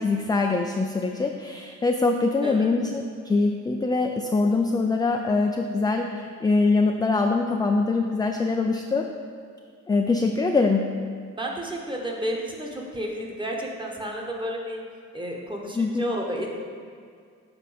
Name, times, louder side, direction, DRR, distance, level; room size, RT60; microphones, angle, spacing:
voice 1, 0.0-9.1 9.9-10.9 15.8-16.0, left 3 dB, 15° left, 3 dB, 0.4 m, -23 dB
voice 2, 11.4-14.8 15.1-16.5, equal, 15° right, 0 dB, 1.2 m, -31 dB
7.6 x 4.0 x 5.1 m, 2.1 s
cardioid pair, 90°, 30 cm